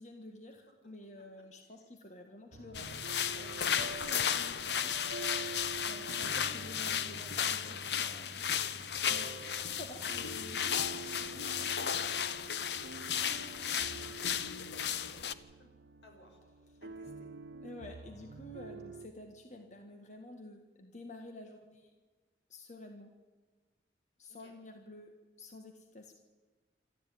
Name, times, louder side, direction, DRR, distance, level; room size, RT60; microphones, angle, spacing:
voice 1, 0.0-4.9 5.9-8.3 8.9-9.3 9.6-10.7 17.6-21.9 22.5-23.1 24.2-25.1 25.4-26.1, left 1 dB, 40° left, 4 dB, 1.7 m, -50 dB
voice 2, 1.1-1.8 10.3-10.5 10.9-15.7 16.0-16.4 16.8-17.3 17.6-17.7 24.3-24.5, left 1 dB, 90° left, 2 dB, 6.4 m, -60 dB
sound 1, 2.5-19.1, right 4 dB, 85° right, 1.0 m, -48 dB
sound 2, 2.7-15.3, left 8 dB, 75° left, 0.8 m, -34 dB
27.0 x 13.5 x 9.4 m, 1.3 s
head